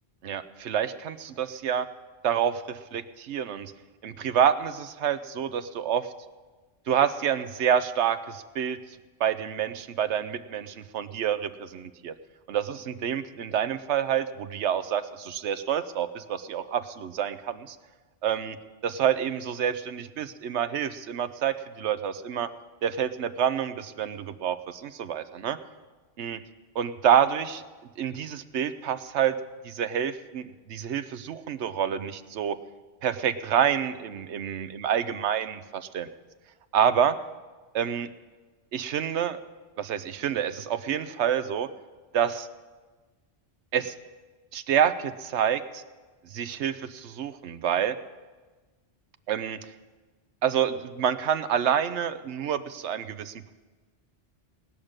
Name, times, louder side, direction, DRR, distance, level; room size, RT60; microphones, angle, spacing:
voice 1, 0.2-1.9 2.2-3.7 4.0-6.1 6.9-8.8 9.2-12.1 12.5-17.8 18.2-18.6 18.8-22.5 22.8-25.6 26.2-26.4 26.7-27.6 28.0-29.3 29.6-32.6 33.0-36.1 36.7-37.2 37.7-38.1 38.7-39.4 39.8-41.7 42.1-42.5 43.7-43.9 44.5-45.8 46.3-48.0 49.3-49.7 50.4-53.5, right 9 dB, 80° right, 12 dB, 1.0 m, -27 dB
19.0 x 6.5 x 8.8 m, 1.3 s
omnidirectional pair, 1.1 m